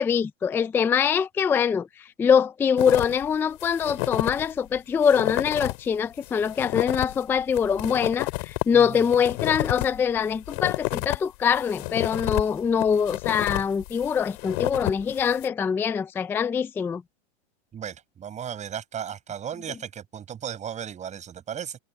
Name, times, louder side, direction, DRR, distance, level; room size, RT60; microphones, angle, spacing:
voice 1, 0.0-17.0, left 7 dB, 5° left, 0.4 m, -24 dB
sound 1, 2.8-3.2 3.6-4.5 4.8-4.9 5.0-5.8 6.2-11.2 11.5-15.5, left 29 dB, 45° left, 4.3 m, -30 dB
voice 2, 8.7-9.0 17.7-21.8, right 8 dB, 20° right, 7.9 m, -35 dB
hypercardioid pair, 140°, 34 cm